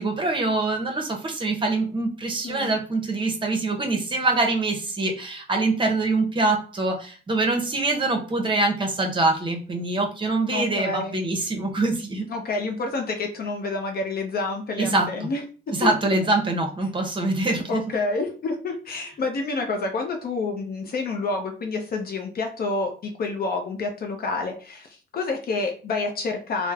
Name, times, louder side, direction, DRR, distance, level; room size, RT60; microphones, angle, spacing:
voice 1, 0.0-12.3 14.8-15.3 15.7-17.8, right 2 dB, 25° right, 2 dB, 0.7 m, -24 dB
voice 2, 2.4-2.8 10.5-11.2 12.3-15.4 15.8-15.9 17.5-26.7, left 3 dB, 50° left, 3 dB, 0.5 m, -28 dB
3.0 x 2.0 x 2.3 m, 0.40 s
cardioid pair, 90°, 20 cm